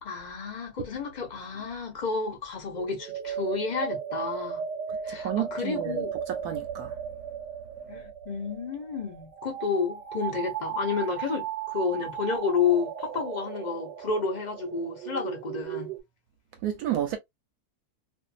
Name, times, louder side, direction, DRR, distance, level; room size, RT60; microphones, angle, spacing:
voice 1, 0.0-4.6 5.0-6.1 7.9-15.9, left 5 dB, 60° left, 0.4 m, -31 dB
sound 1, 2.7-16.0, right 8 dB, 85° right, 1.2 m, -36 dB
voice 2, 5.1-7.0 16.6-17.2, right 11 dB, 70° right, 1.0 m, -31 dB
2.6 x 2.4 x 2.3 m
omnidirectional pair, 1.8 m